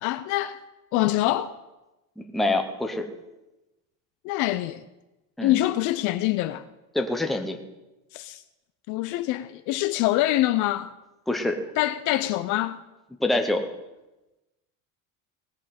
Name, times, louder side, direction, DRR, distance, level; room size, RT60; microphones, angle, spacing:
voice 1, 0.0-0.6 0.9-1.6 4.2-4.8 5.4-6.6 8.1-8.4 8.9-10.9 11.8-12.8, left 15 dB, 50° left, 0.5 m, -25 dB
voice 2, 2.2-3.1 5.4-5.6 6.9-7.6 11.3-11.6 13.2-13.7, left 2 dB, ahead, 0.8 m, -25 dB
18.5 x 7.3 x 5.8 m
cardioid pair, 170°, 40 cm